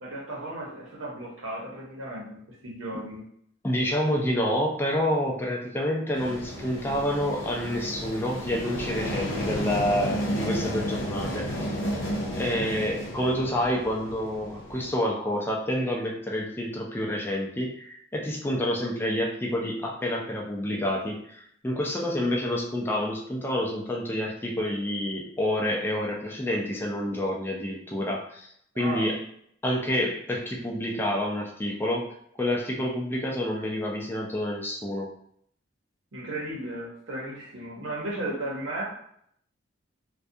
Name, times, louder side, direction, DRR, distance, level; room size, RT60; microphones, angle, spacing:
voice 1, 0.0-3.2 28.7-29.1 36.1-38.8, right 1 dB, 85° right, -3 dB, 0.8 m, -35 dB
voice 2, 3.6-11.8 12.4-28.5 28.8-29.2 29.6-35.1, left 1 dB, 10° left, -1 dB, 0.4 m, -28 dB
sound 1, 6.1-14.9, equal, 70° left, 0.6 m, -32 dB
2.3 x 2.2 x 2.6 m, 0.67 s
head